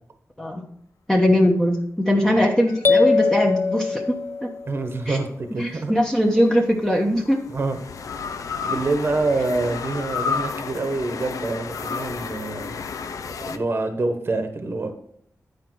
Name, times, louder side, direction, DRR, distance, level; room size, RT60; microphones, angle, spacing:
voice 1, 1.1-4.5 5.1-5.2 5.6-7.5, equal, 10° left, -1 dB, 1.1 m, -20 dB
sound 1, 2.7-4.2 6.0-13.6, left 5 dB, 80° left, 0.6 m, -32 dB
sound 2, 2.8-4.7, left 4 dB, 35° left, 0.5 m, -21 dB
voice 2, 4.7-5.9 7.5-7.8 8.6-12.8 13.5-14.9, right 3 dB, 45° right, 6 dB, 1.1 m, -26 dB
10.5 x 5.0 x 4.6 m, 0.67 s
wide cardioid pair, 135°, 6 cm